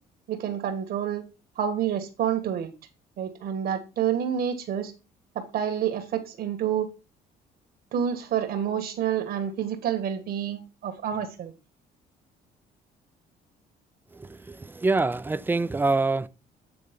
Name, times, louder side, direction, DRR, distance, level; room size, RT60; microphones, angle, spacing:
voice 1, 0.3-1.2 1.6-2.7 3.2-4.9 5.3-6.9 7.9-11.5, right 9 dB, 65° right, 1.5 m, -28 dB
voice 2, 14.1-16.3, right 3 dB, 10° right, 0.4 m, -25 dB
8.7 x 3.7 x 5.1 m
cardioid pair, 110°, 17 cm